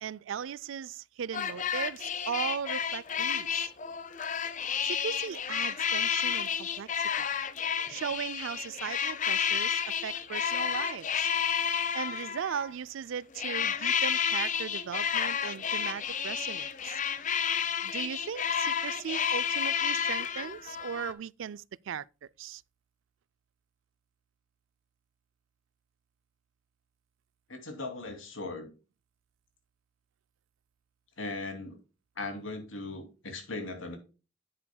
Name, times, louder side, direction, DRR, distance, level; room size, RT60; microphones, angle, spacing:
voice 1, 0.0-3.7 4.8-7.3 7.9-11.3 11.9-17.0 17.8-22.0 22.4-22.6, right 7 dB, 80° right, 0.4 m, -38 dB
sound 1, 1.3-12.7 13.3-21.1, left 8 dB, 40° left, 0.7 m, -31 dB
voice 2, 27.5-28.7 31.2-31.8 32.2-34.0, left 3 dB, 85° left, 2.7 m, -38 dB
9.8 x 8.3 x 2.2 m
head